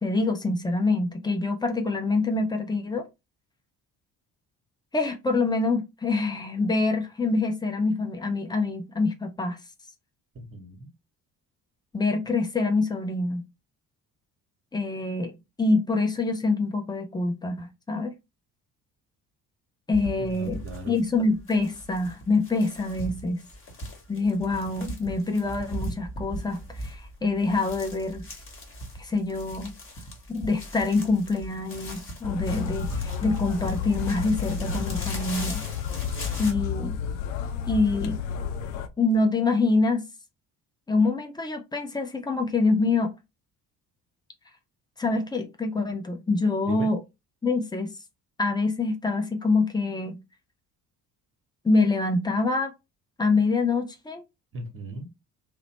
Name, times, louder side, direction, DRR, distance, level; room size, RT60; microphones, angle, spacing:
voice 1, 0.0-3.1 4.9-9.6 11.9-13.4 14.7-15.3 15.6-18.1 19.9-23.4 24.1-28.3 29.0-29.7 30.3-35.6 36.4-37.0 37.7-38.2 39.0-40.0 40.9-43.1 45.0-47.0 47.4-47.9 48.4-50.2 51.6-52.7 53.2-54.2, left 3 dB, 10° left, 0.5 m, -25 dB
voice 2, 10.3-10.9 20.2-21.0 46.7-46.9 54.5-55.1, right 2 dB, 25° right, 1.0 m, -37 dB
sound 1, 19.9-36.5, equal, 25° left, 1.2 m, -39 dB
sound 2, 32.2-38.9, left 7 dB, 60° left, 0.6 m, -31 dB
2.9 x 2.0 x 2.8 m
figure-of-eight pair, 50°, 50 cm